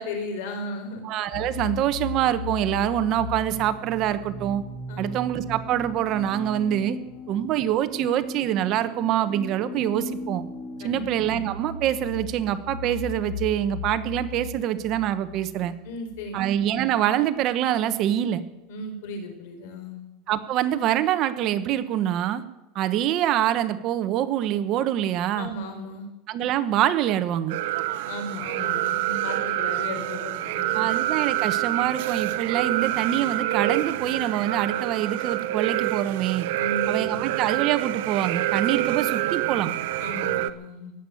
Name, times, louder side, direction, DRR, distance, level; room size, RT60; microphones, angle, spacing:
voice 1, 0.0-1.0 4.9-5.1 10.8-11.0 15.8-16.4 18.7-20.0 25.3-26.1 28.0-30.8 36.6-37.2 40.0-40.9, left 2 dB, 75° left, 5 dB, 4.4 m, -35 dB
voice 2, 1.0-4.6 5.0-7.0 7.3-10.5 10.8-15.7 16.3-18.4 20.3-22.4 22.7-25.5 26.3-27.6 30.7-36.5 36.9-39.8, right 11 dB, 40° right, 11 dB, 1.2 m, -25 dB
sound 1, 1.3-16.9, left 5 dB, 30° left, 3.6 m, -37 dB
sound 2, 27.5-40.5, right 15 dB, 70° right, 0.8 m, -27 dB
18.5 x 8.2 x 9.4 m, 0.97 s
supercardioid pair, 160°, 0 cm